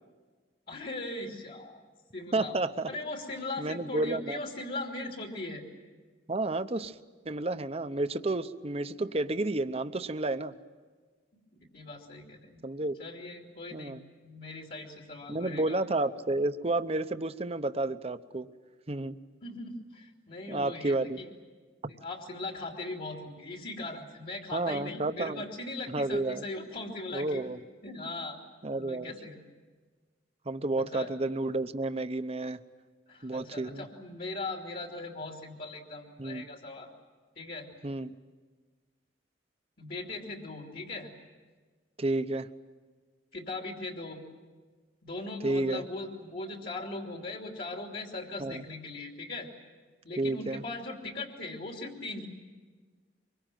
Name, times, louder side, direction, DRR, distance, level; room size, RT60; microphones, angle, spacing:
voice 1, 0.7-1.8 2.1-2.6 2.9-5.6 11.3-11.4 11.7-12.7 13.0-14.0 14.2-15.8 19.4-21.3 21.9-27.4 27.8-28.4 28.8-29.4 30.8-31.1 33.1-36.9 37.3-37.7 39.8-41.1 43.3-44.2 45.0-49.5 50.0-52.3, left 2 dB, 55° left, 1 dB, 2.9 m, -39 dB
voice 2, 2.3-2.9 3.6-4.4 6.3-7.0 7.2-10.5 12.6-13.0 13.7-14.0 15.3-18.5 18.9-19.2 20.5-21.2 24.5-25.4 25.9-26.4 27.1-27.6 28.6-29.1 30.5-32.6 33.2-33.9 36.2-36.4 37.8-38.2 42.0-42.5 45.4-45.8 48.4-48.6 50.2-50.6, right 2 dB, 35° right, 10 dB, 0.9 m, -31 dB
25.0 x 23.0 x 9.2 m, 1.4 s
head